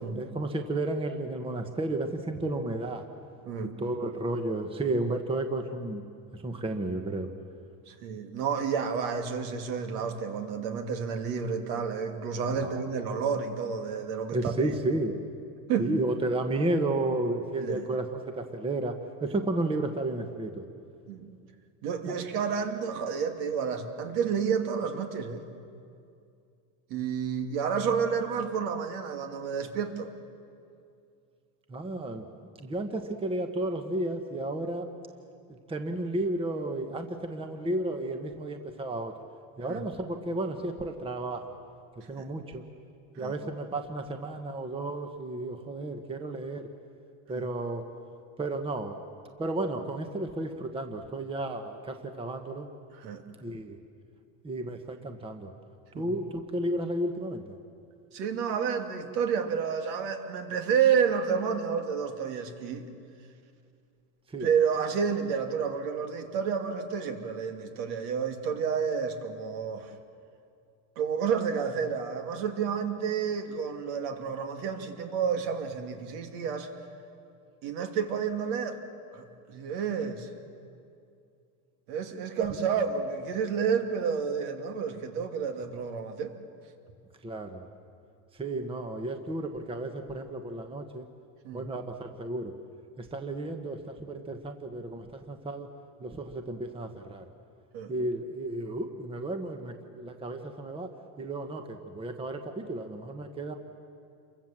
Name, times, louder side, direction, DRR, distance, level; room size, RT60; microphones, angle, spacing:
voice 1, 0.1-3.0 3.8-6.0 6.3-7.3 12.6-12.8 14.3-15.2 15.8-20.6 22.1-22.2 31.7-32.3 32.6-34.9 35.7-39.1 39.6-41.4 42.1-42.6 43.2-46.7 47.3-47.9 48.4-49.0 49.4-52.7 53.4-53.8 54.4-55.5 55.9-57.4 64.3-64.5 87.2-87.6 88.3-91.0 91.5-92.5 93.0-95.7 96.0-97.3 97.9-100.9 101.2-103.5, right 2 dB, 10° right, 6 dB, 1.2 m, -32 dB
voice 2, 3.4-3.8 7.9-14.8 15.7-15.9 17.6-17.9 21.1-21.3 21.8-25.4 26.9-30.1 39.7-39.8 42.2-42.3 43.2-43.3 47.3-47.5 52.9-53.2 55.9-56.1 58.1-62.9 64.4-69.9 71.0-76.7 77.6-78.8 79.1-80.3 81.9-86.3 91.4-91.6 97.7-97.9, right 6 dB, 65° right, 5 dB, 2.7 m, -30 dB
28.5 x 23.5 x 7.5 m, 2.4 s
supercardioid pair, 140°, 48 cm